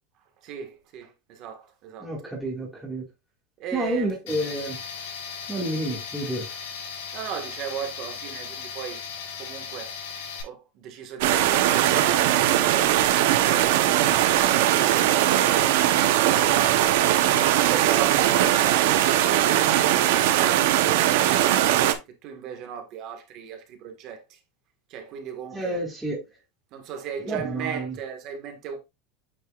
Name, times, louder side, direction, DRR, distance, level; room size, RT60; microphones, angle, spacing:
voice 1, 0.4-2.1 3.6-4.1 7.1-9.0 9.4-9.9 10.4-15.0 16.2-20.7 21.3-24.4 24.9-25.8 26.7-28.8, right 8 dB, 40° right, 1.6 m, -37 dB
voice 2, 2.0-3.0 3.7-4.8 5.5-6.5 25.5-26.2 27.2-27.9, right 1 dB, 5° right, 2.0 m, -29 dB
Tools, 4.3-10.4, left 6 dB, 80° left, 3.8 m, -37 dB
sound 1, 11.2-21.9, right 12 dB, 70° right, 0.9 m, -20 dB
8.8 x 4.6 x 2.4 m
supercardioid pair, 165°, 0 cm